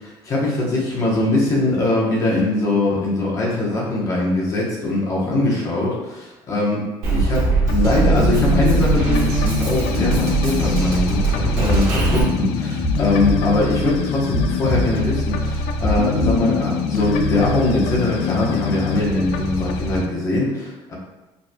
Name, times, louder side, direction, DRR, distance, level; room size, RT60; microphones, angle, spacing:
voice 1, 0.0-6.8 7.1-7.4 7.7-20.9, left 2 dB, 35° left, -4 dB, 1.0 m, -21 dB
Drum kit, 7.0-12.2, right 4 dB, 70° right, 1.4 m, -21 dB
sound 1, 7.7-20.1, left 4 dB, 85° left, 0.4 m, -24 dB
sound 2, 11.6-11.9 12.8-13.4 14.3-14.9 15.8-16.4, left 1 dB, 5° left, 0.7 m, -22 dB
5.2 x 3.1 x 2.2 m, 1.1 s
cardioid pair, 175°, 10 cm